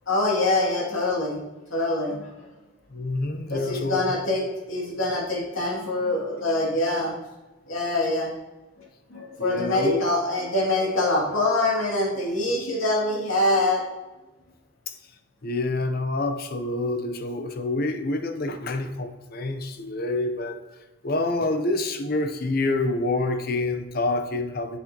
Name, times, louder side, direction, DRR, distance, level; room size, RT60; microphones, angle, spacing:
voice 1, 0.1-1.4 1.7-2.2 3.5-7.1 7.7-8.3 9.1-13.8, left 2 dB, 80° left, -3 dB, 2.5 m, -24 dB
voice 2, 2.9-4.1 9.4-10.0 14.9-15.0 15.4-20.6 21.0-24.8, left 2 dB, 45° left, 8 dB, 0.7 m, -27 dB
7.4 x 6.8 x 2.9 m, 1.1 s
head